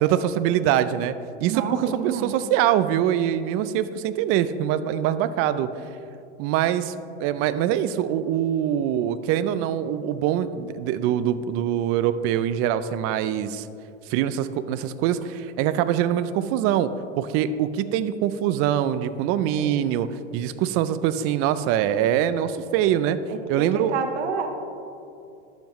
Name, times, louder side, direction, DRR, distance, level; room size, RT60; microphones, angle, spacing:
voice 1, 0.0-1.1 1.4-5.7 6.4-6.9 7.2-13.7 14.1-16.9 17.2-23.2 23.5-23.9, right 10 dB, 40° right, 13 dB, 0.4 m, -23 dB
voice 2, 1.5-2.3 19.5-19.8 23.3-24.5, right 6 dB, 75° right, 4 dB, 1.0 m, -30 dB
11.5 x 7.1 x 3.1 m, 2.7 s
supercardioid pair, 120°, 35 cm